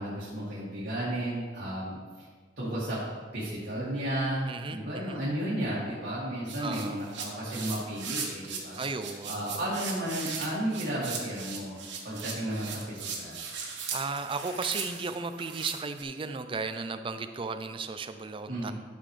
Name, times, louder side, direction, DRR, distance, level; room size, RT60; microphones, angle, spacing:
voice 1, 0.0-2.3 2.6-3.0 3.3-8.8 9.2-11.8 12.0-13.4 18.5-18.7, right 1 dB, 60° right, -10 dB, 2.2 m, -33 dB
voice 2, 4.5-5.2 6.6-7.0 8.8-9.3 13.9-18.7, right 4 dB, 30° right, 9 dB, 0.4 m, -35 dB
sound 1, 6.5-16.0, right 6 dB, 85° right, 1.5 m, -38 dB
12.0 x 6.0 x 3.3 m, 1.5 s
head